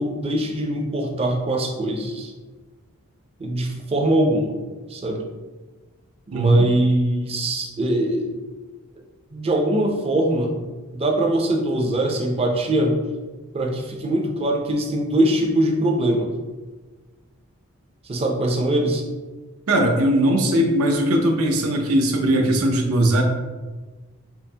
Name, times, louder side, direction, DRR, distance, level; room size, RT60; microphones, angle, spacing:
voice 1, 0.0-2.3 3.4-4.6 4.9-5.2 6.3-8.4 9.3-10.6 10.9-13.0 13.5-16.3 18.0-19.0, right 1 dB, 25° right, 1 dB, 0.4 m, -22 dB
voice 2, 6.3-6.7 19.7-23.2, right 1 dB, 80° right, 2 dB, 0.6 m, -19 dB
5.6 x 2.0 x 2.7 m, 1.3 s
head